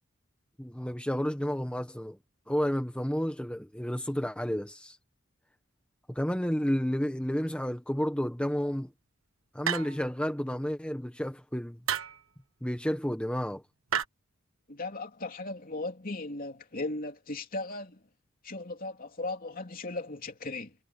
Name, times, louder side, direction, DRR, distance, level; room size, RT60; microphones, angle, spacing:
voice 1, 0.6-2.2 2.5-5.0 6.1-8.9 9.5-11.8 12.6-13.6, equal, 5° left, 1.2 m, -31 dB
sound 1, 9.7-10.2 11.9-12.2 13.9-14.0, right 8 dB, 80° right, 1.4 m, -31 dB
voice 2, 14.7-18.0 18.4-20.8, left 2 dB, 45° left, 3.1 m, -37 dB
head